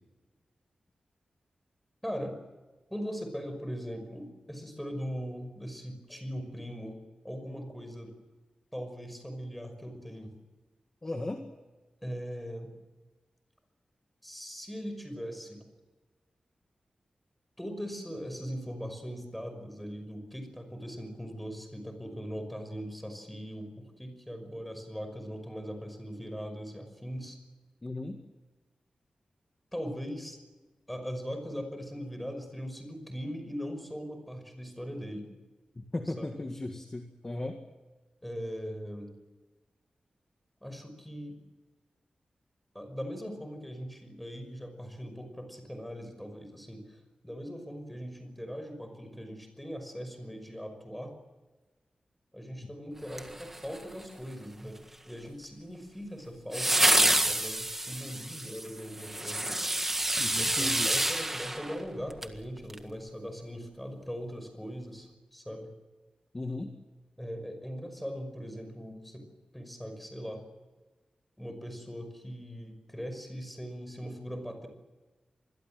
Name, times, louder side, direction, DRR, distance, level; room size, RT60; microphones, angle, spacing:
voice 1, 2.0-2.4 2.9-7.0 7.2-8.1 8.7-10.3 12.0-12.7 14.2-15.6 17.6-27.4 29.7-30.4 30.9-35.3 36.1-36.3 38.2-39.1 40.6-41.4 42.7-51.1 52.3-54.8 55.1-59.6 60.3-65.7 67.2-69.2 69.5-70.4 71.4-74.7, equal, 5° left, 7 dB, 5.7 m, -40 dB
voice 2, 11.0-11.4 27.8-28.2 35.8-37.6 52.6-52.7 60.2-60.9 66.3-66.7, left 2 dB, 20° left, 4 dB, 1.9 m, -36 dB
sound 1, 53.1-54.0 56.5-62.4 62.7-62.8, right 1 dB, 15° right, 1.7 m, -28 dB
26.5 x 21.5 x 7.7 m, 1.2 s
wide cardioid pair, 165°, 2 cm